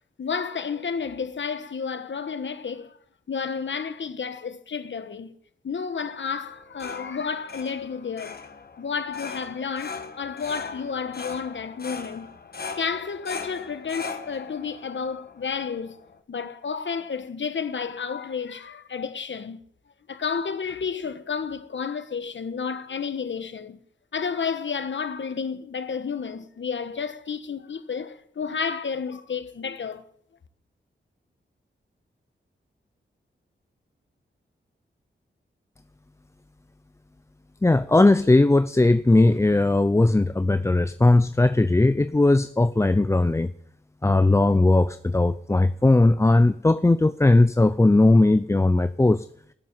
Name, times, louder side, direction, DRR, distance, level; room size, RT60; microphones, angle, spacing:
voice 1, 0.2-3.0 3.3-5.3 5.6-8.4 8.8-12.3 12.7-15.9 16.3-19.6 20.1-23.8 24.1-30.0, left 6 dB, 65° left, 1.3 m, -31 dB
sound 1, 6.4-16.2, left 5 dB, 50° left, 1.5 m, -40 dB
voice 2, 37.6-43.5 44.0-49.3, left 2 dB, 15° left, 0.5 m, -18 dB
17.0 x 7.5 x 7.5 m
cardioid pair, 65°, 21 cm